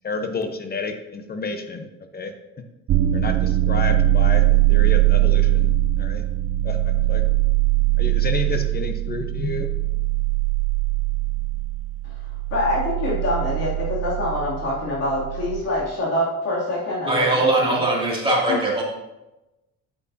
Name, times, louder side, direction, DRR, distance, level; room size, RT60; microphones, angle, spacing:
voice 1, 0.0-2.3 3.1-4.4 4.7-5.7 6.0-6.3 6.6-7.3 8.0-9.7, left 3 dB, 30° left, 7 dB, 0.9 m, -30 dB
sound 1, 2.9-15.6, right 14 dB, 50° right, 0.6 m, -21 dB
voice 2, 12.5-17.8, left 1 dB, 55° left, -5 dB, 2.7 m, -25 dB
voice 3, 17.1-18.8, right 2 dB, 15° right, -4 dB, 2.5 m, -21 dB
8.2 x 8.1 x 2.8 m, 1.0 s
cardioid pair, 115°, 30 cm